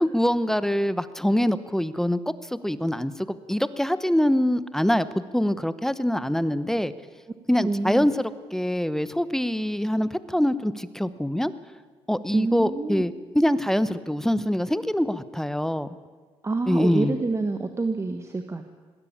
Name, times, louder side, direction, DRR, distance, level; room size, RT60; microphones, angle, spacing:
voice 1, 0.0-6.9 7.5-11.5 12.1-15.9 16.7-17.1, equal, 5° left, 15 dB, 0.8 m, -24 dB
voice 2, 7.6-8.1 12.3-13.0 16.4-18.6, right 3 dB, 25° right, 7 dB, 1.3 m, -27 dB
20.0 x 16.0 x 8.6 m, 1.5 s
cardioid pair, 100°, 11 cm